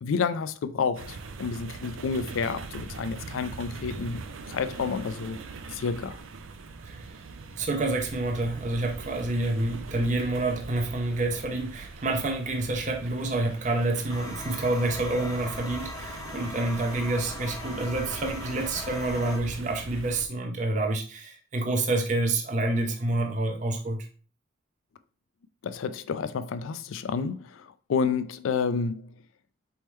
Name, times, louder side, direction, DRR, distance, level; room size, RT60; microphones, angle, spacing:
voice 1, 0.0-4.2 4.5-5.4 5.7-6.2 25.6-29.1, left 5 dB, 85° left, 0.4 m, -30 dB
sound 1, 1.0-20.3, right 3 dB, 85° right, 0.5 m, -42 dB
voice 2, 7.6-24.1, right 2 dB, 35° right, 0.5 m, -28 dB
sound 2, 14.1-19.4, left 2 dB, 15° left, 0.6 m, -40 dB
4.3 x 3.5 x 3.0 m
head